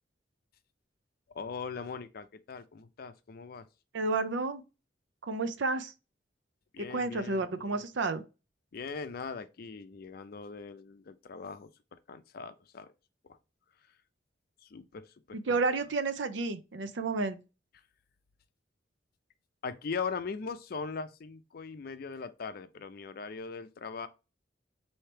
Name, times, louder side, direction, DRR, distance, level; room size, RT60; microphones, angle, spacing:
voice 1, 1.3-3.7 6.7-8.1 8.7-11.7 12.1-12.9 14.6-15.6 19.6-24.1, left 5 dB, 55° left, 0.5 m, -40 dB
voice 2, 3.9-4.6 5.2-5.9 6.9-8.2 15.3-17.4, right 3 dB, 85° right, 0.6 m, -31 dB
4.4 x 2.8 x 3.3 m
head